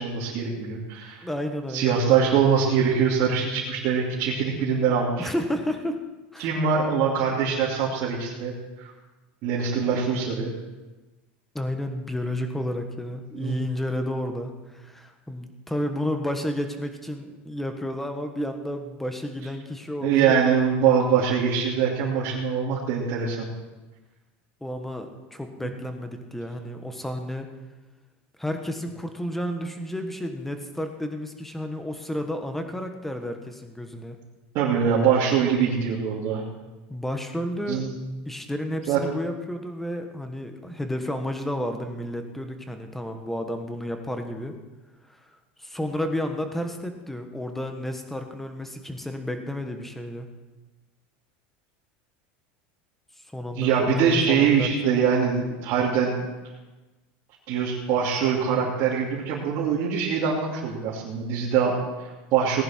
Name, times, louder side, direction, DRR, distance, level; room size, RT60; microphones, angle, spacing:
voice 1, 0.0-1.2 1.7-5.3 6.4-8.5 9.4-10.5 13.3-13.6 20.0-23.5 34.5-36.4 37.7-37.9 38.9-39.0 53.6-56.1 57.5-62.6, right 7 dB, 50° right, -6 dB, 2.7 m, -23 dB
voice 2, 1.2-2.0 5.2-6.0 6.3-6.5 11.5-20.4 24.6-27.5 28.4-34.2 36.9-37.9 38.2-44.5 45.1-45.3 45.6-50.3 53.3-55.0, left 1 dB, 5° left, 6 dB, 1.4 m, -31 dB
18.5 x 10.5 x 4.5 m, 1.2 s
supercardioid pair, 135°, 6 cm